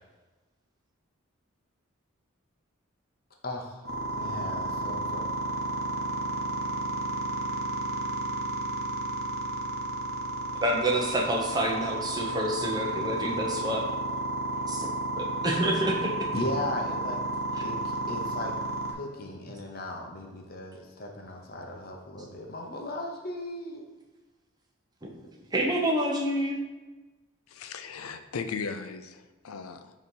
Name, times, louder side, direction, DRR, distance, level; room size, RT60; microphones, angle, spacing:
voice 1, 3.4-3.8 4.1-5.3 16.3-17.2 17.6-18.5 18.9-23.8, left 1 dB, 45° left, 1 dB, 0.8 m, -37 dB
sound 1, 3.8-18.9, right 2 dB, 75° right, 0.9 m, -32 dB
voice 2, 10.6-13.8 14.7-14.9 15.2-16.3 25.0-25.1 25.5-26.6, right 1 dB, 20° right, 0 dB, 0.8 m, -28 dB
voice 3, 27.5-29.9, left 5 dB, 85° left, 9 dB, 0.5 m, -37 dB
6.6 x 3.1 x 5.4 m, 1.2 s
head